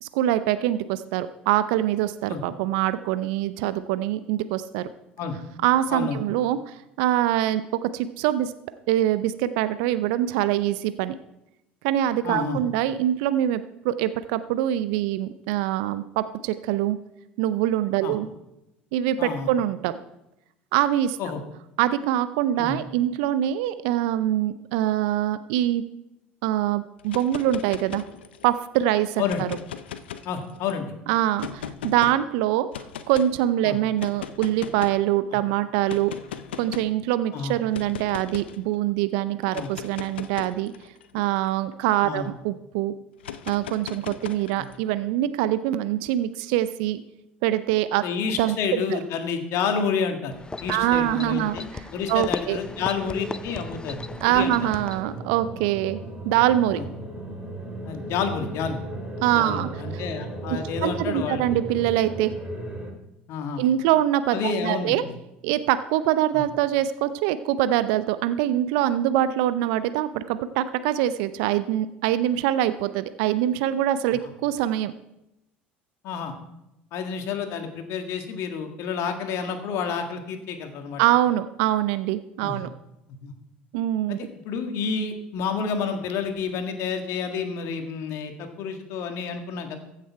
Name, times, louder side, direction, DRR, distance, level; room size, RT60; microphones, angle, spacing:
voice 1, 0.0-4.9 5.6-8.5 8.9-11.2 11.8-17.0 17.4-18.3 18.9-19.9 20.7-21.2 21.8-25.8 26.4-28.0 28.4-29.5 31.1-32.7 33.1-36.1 36.6-40.7 41.1-42.9 43.5-47.0 47.4-48.0 48.4-49.0 50.7-51.6 52.1-52.6 54.2-56.0 56.2-56.8 59.2-59.7 59.9-60.0 60.8-62.3 63.6-65.0 65.4-74.9 81.0-82.7 83.7-84.2, right 12 dB, 65° right, 13 dB, 0.5 m, -24 dB
voice 2, 5.9-6.2 12.2-12.6 18.0-18.1 19.2-19.5 21.2-21.4 22.6-22.8 29.2-29.4 30.2-30.9 33.6-33.8 37.3-37.5 39.5-39.7 42.0-42.3 48.0-50.3 50.6-54.0 54.3-54.7 56.7-56.9 57.8-58.8 59.3-61.6 63.3-63.6 64.3-65.2 66.3-66.4 76.0-76.3 76.9-81.0 82.4-82.6 83.2-83.3 84.1-84.2 84.5-89.8, left 6 dB, 55° left, 5 dB, 1.8 m, -29 dB
sound 1, 27.0-28.5 29.2-30.7 31.4-32.1 32.7-33.3 34.0-35.1 35.9-37.0 37.7-38.6 39.4-42.3 43.2-44.8, left 9 dB, 80° left, 0.6 m, -38 dB
sound 2, 50.3-55.2, left 3 dB, 15° left, 0.6 m, -37 dB
sound 3, 52.6-62.9, right 2 dB, 20° right, 3.5 m, -36 dB
15.0 x 6.7 x 4.6 m, 0.88 s
hypercardioid pair, 65°, 6 cm